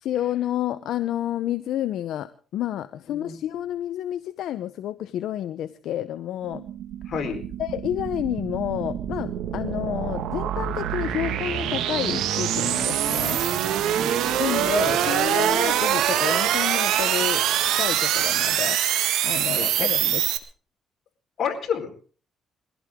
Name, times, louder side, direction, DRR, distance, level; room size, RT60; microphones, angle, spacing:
voice 1, 0.0-6.6 7.6-13.4 14.4-17.5 17.8-18.8 19.2-20.2, left 12 dB, 80° left, 12 dB, 0.8 m, -29 dB
sound 1, 6.4-20.4, right 11 dB, 85° right, 1.7 m, -24 dB
voice 2, 7.1-7.5 14.0-14.4 19.5-19.9 21.4-21.9, left 7 dB, 60° left, 3 dB, 4.2 m, -30 dB
22.0 x 16.0 x 3.7 m, 0.39 s
cardioid pair, 90°, 0 cm